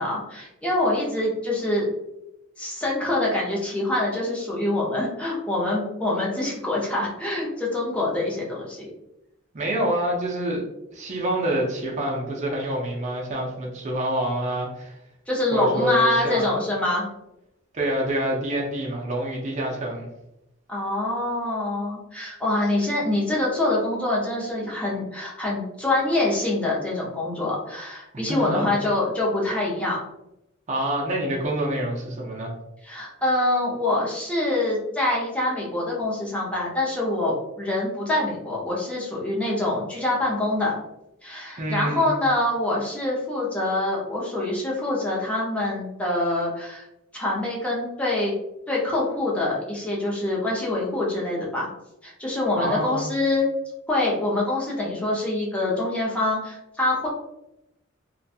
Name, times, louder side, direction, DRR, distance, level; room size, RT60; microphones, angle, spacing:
voice 1, 0.0-1.9 2.6-8.9 15.3-17.1 20.7-30.0 32.8-40.7 41.2-46.9 47.1-48.3 48.7-51.7 52.0-53.5 53.9-57.1, left 2 dB, 5° left, -5 dB, 0.6 m, -25 dB
voice 2, 9.5-10.6 10.9-15.0 15.5-16.5 17.7-20.1 28.3-28.7 30.7-32.5 41.6-42.1 52.6-53.1, right 1 dB, 35° right, -2 dB, 0.5 m, -27 dB
2.4 x 2.2 x 2.6 m, 0.88 s
head